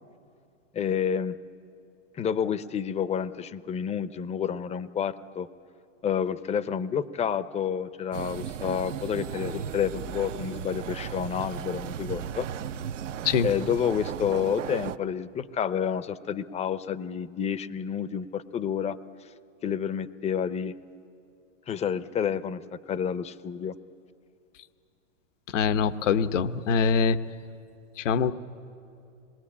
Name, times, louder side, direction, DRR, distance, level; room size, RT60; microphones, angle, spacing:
voice 1, 0.7-1.3 2.1-5.5 6.0-12.5 13.4-19.0 19.6-20.7 21.7-22.6 22.9-23.8, left 8 dB, 15° left, 15 dB, 0.7 m, -29 dB
sound 1, 8.1-15.0, right 9 dB, 75° right, 1.0 m, -36 dB
voice 2, 25.5-27.2 28.0-28.3, left 6 dB, 75° left, 11 dB, 1.1 m, -24 dB
26.5 x 21.5 x 8.6 m, 2.5 s
hypercardioid pair, 115°, 37 cm